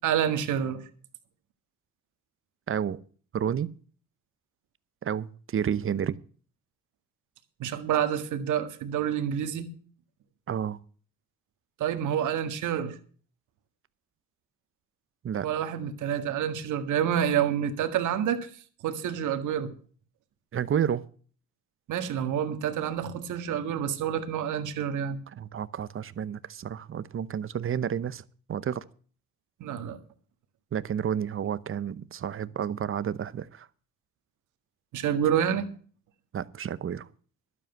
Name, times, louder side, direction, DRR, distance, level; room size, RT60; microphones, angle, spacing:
voice 1, 0.0-0.9 7.6-9.7 11.8-13.0 15.4-18.5 18.8-19.7 21.9-25.2 29.6-30.0 34.9-35.6, right 9 dB, 80° right, 1.7 m, -28 dB
voice 2, 2.7-3.0 3.3-3.7 5.0-6.2 10.5-10.8 15.2-15.5 20.5-21.1 25.3-28.2 28.5-28.8 30.7-33.7 36.3-37.1, right 8 dB, 45° right, 0.8 m, -30 dB
12.0 x 7.6 x 7.8 m
cardioid pair, 90°, 30 cm